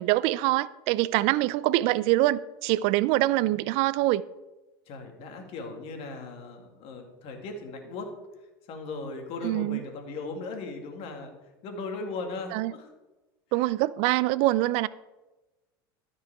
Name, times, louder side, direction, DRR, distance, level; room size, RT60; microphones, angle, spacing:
voice 1, 0.0-4.2 9.4-9.8 12.5-12.7 13.5-14.9, right 17 dB, 60° right, 0.4 m, -24 dB
voice 2, 4.9-8.1 8.7-11.3 11.6-12.9 13.5-13.7, left 3 dB, 55° left, 2.3 m, -38 dB
13.0 x 5.5 x 4.8 m
hypercardioid pair, 85°, 12 cm